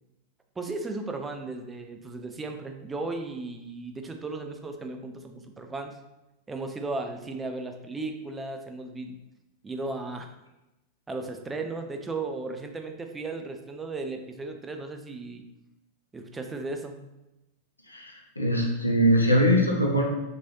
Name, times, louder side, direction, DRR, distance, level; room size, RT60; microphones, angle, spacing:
voice 1, 0.6-6.0 6.5-9.2 9.6-10.3 11.1-15.4 16.1-17.1, right 3 dB, 15° right, 5 dB, 0.3 m, -35 dB
voice 2, 17.9-20.0, equal, 85° left, -1 dB, 0.4 m, -22 dB
3.0 x 2.7 x 2.6 m, 0.96 s
figure-of-eight pair, 90°, 0 cm